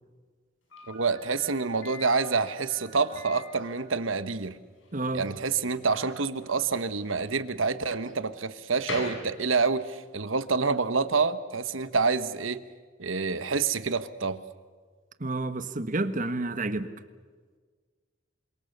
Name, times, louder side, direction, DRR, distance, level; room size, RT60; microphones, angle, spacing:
Slam, 0.7-10.0, left 2 dB, 80° left, 7.3 m, -45 dB
voice 1, 0.9-4.6 5.1-12.6 13.0-14.4, right 4 dB, 85° right, 1.3 m, -27 dB
voice 2, 4.9-5.3 15.2-16.9, right 2 dB, 40° right, 1.5 m, -30 dB
28.5 x 26.0 x 6.8 m
head